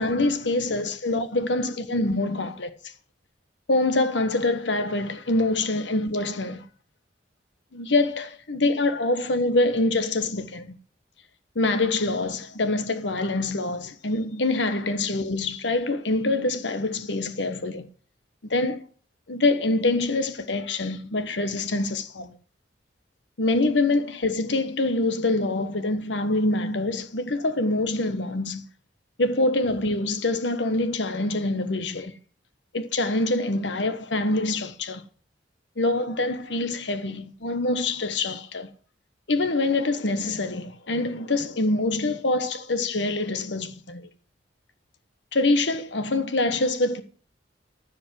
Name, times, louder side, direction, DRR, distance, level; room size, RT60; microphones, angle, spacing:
voice 1, 0.0-2.7 3.7-6.6 7.7-10.8 11.5-17.9 18.4-18.8 19.3-22.3 23.4-28.6 29.2-32.2 32.7-35.0 35.8-38.7 39.3-44.1 45.3-47.0, left 2 dB, 75° left, 1.3 m, -25 dB
14.5 x 5.3 x 7.6 m
head